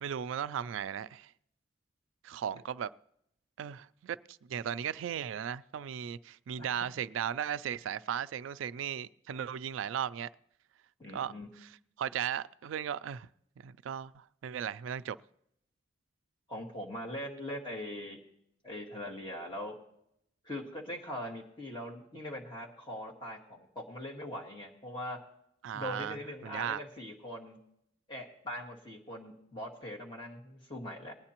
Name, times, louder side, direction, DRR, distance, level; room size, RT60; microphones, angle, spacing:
voice 1, 0.0-1.3 2.2-2.9 3.6-10.3 11.1-11.7 12.0-13.3 13.6-15.2 25.6-26.2 26.4-26.8, right 9 dB, 85° right, 0.3 m, -36 dB
voice 2, 11.0-11.5 16.5-18.2 18.6-19.8 20.5-25.2 25.7-27.6 28.1-31.2, left 1 dB, 25° left, 1.8 m, -41 dB
20.0 x 9.6 x 2.9 m
head